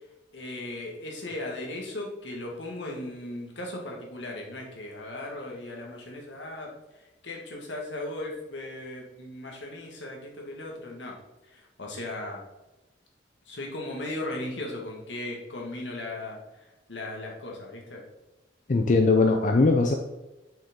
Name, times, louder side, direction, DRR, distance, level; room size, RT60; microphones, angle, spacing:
voice 1, 0.3-6.7 7.2-11.2 11.5-12.4 13.5-18.0, left 1 dB, 75° left, -1 dB, 1.8 m, -37 dB
voice 2, 18.7-19.9, left 3 dB, 45° left, 3 dB, 0.5 m, -20 dB
7.8 x 5.9 x 3.7 m, 1.0 s
head